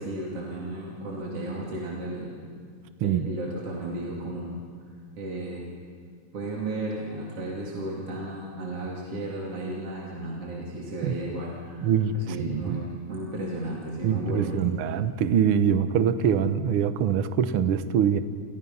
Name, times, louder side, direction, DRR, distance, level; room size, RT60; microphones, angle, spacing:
voice 1, 0.0-2.4 3.0-4.6 5.2-5.7 6.3-11.9 12.1-14.5, right 2 dB, 45° right, -4 dB, 3.6 m, -34 dB
voice 2, 11.8-12.8 14.0-18.2, right 8 dB, 80° right, 10 dB, 1.2 m, -24 dB
29.5 x 29.5 x 5.6 m, 2.1 s
omnidirectional pair, 3.8 m